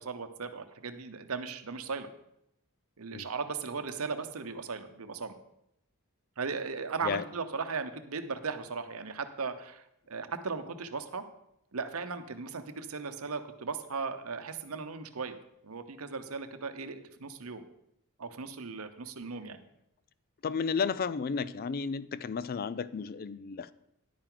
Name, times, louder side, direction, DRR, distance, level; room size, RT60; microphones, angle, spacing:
voice 1, 0.0-2.1 3.0-5.3 6.4-11.2 11.7-15.4 15.6-17.6 18.2-19.6, right 4 dB, 70° right, 9 dB, 0.8 m, -37 dB
voice 2, 20.4-23.7, left 5 dB, 40° left, 17 dB, 0.4 m, -33 dB
10.5 x 9.0 x 3.9 m, 0.79 s
head